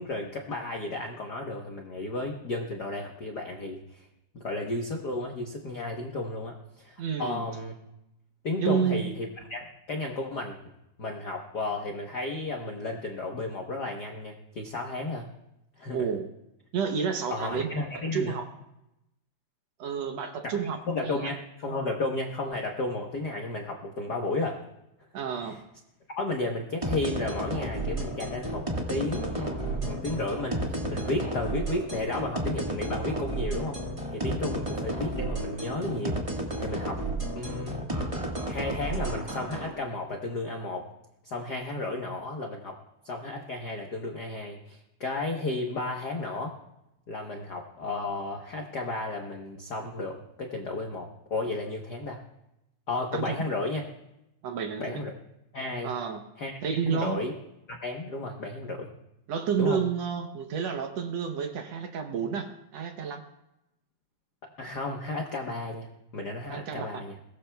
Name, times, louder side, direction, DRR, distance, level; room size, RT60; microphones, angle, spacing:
voice 1, 0.0-4.1 4.3-7.7 8.4-10.6 11.0-15.3 15.8-16.1 17.3-18.4 20.4-24.6 25.4-25.5 26.1-33.8 34.1-37.8 38.5-40.9 41.2-46.5 47.1-52.2 52.9-53.9 54.8-55.1 55.5-55.9 56.4-56.5 56.8-57.3 57.7-58.9 59.6-59.8 64.6-67.1, left 2 dB, 70° left, 1 dB, 0.9 m, -33 dB
voice 2, 7.0-7.4 8.6-9.0 15.9-16.3 16.7-17.7 18.1-18.5 19.8-21.3 25.1-25.6 53.1-53.4 54.4-55.0 55.8-56.2 56.6-57.2 59.3-63.2 66.5-67.0, right 7 dB, 70° right, 5 dB, 1.8 m, -30 dB
sound 1, 26.8-39.7, right 1 dB, 30° right, 0.6 m, -32 dB
22.0 x 17.5 x 2.3 m, 0.88 s
omnidirectional pair, 3.6 m